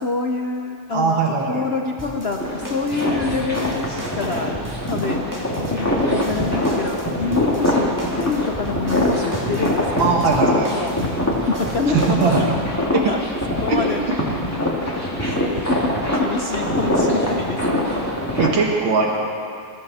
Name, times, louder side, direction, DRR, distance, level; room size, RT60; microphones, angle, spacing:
voice 1, 0.0-1.2 1.5-4.6 4.9-5.3 5.6-10.1 10.7-11.1 11.5-12.5 12.9-13.2 13.6-14.2 15.2-15.4 15.7-17.9, left 4 dB, 65° left, 3 dB, 0.6 m, -26 dB
voice 2, 0.9-1.7 10.0-10.7 11.9-12.4 18.4-19.2, right 5 dB, 85° right, 0 dB, 2.5 m, -20 dB
sound 1, 2.0-12.7, equal, 10° right, 1.7 m, -36 dB
sound 2, 2.4-18.5, left 1 dB, 10° left, 2.2 m, -23 dB
21.5 x 15.0 x 4.2 m, 2.3 s
omnidirectional pair, 2.1 m